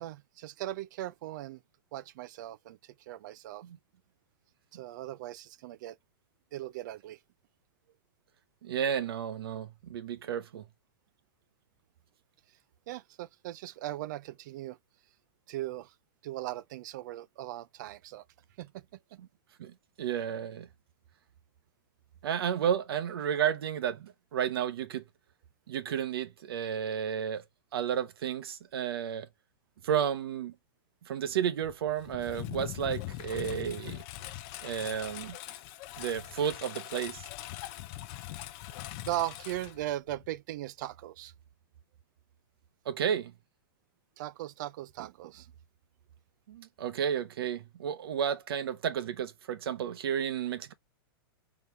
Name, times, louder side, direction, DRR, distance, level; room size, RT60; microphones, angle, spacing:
voice 1, 0.0-1.6 1.9-3.6 4.7-6.0 6.5-7.2 12.9-14.8 15.5-15.9 16.2-18.2 18.6-18.9 39.0-41.3 44.2-45.5, right 14 dB, 50° right, 0.5 m, -38 dB
voice 2, 8.6-10.7 19.6-20.7 22.2-25.0 25.7-27.4 27.7-29.3 29.8-30.5 31.0-34.0 34.6-35.4 36.0-37.3 42.8-43.3 46.5-50.7, right 8 dB, 75° right, 1.0 m, -32 dB
Engine, 31.6-40.4, left 15 dB, 35° left, 0.5 m, -42 dB
4.0 x 3.4 x 2.7 m
hypercardioid pair, 155°, 13 cm